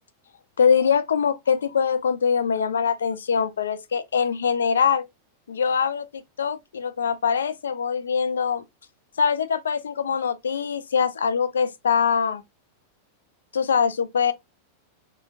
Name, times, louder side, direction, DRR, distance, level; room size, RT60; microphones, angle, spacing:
voice 1, 0.6-5.1 5.5-8.6 9.2-12.4 13.5-14.3, left 6 dB, 70° left, 0.5 m, -23 dB
5.0 x 2.3 x 2.3 m
figure-of-eight pair, 90°, 0 cm